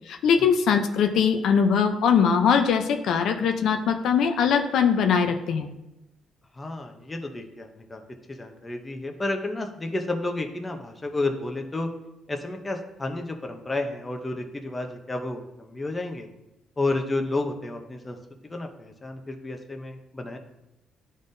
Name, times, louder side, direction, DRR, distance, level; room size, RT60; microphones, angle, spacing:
voice 1, 0.1-5.7, left 6 dB, 70° left, 5 dB, 0.6 m, -21 dB
voice 2, 6.5-8.0 8.3-11.9 12.3-16.3 16.8-18.2 18.4-20.4, left 2 dB, 20° left, 4 dB, 0.7 m, -31 dB
11.0 x 3.7 x 2.6 m, 0.93 s
cardioid pair, 120°, 0 cm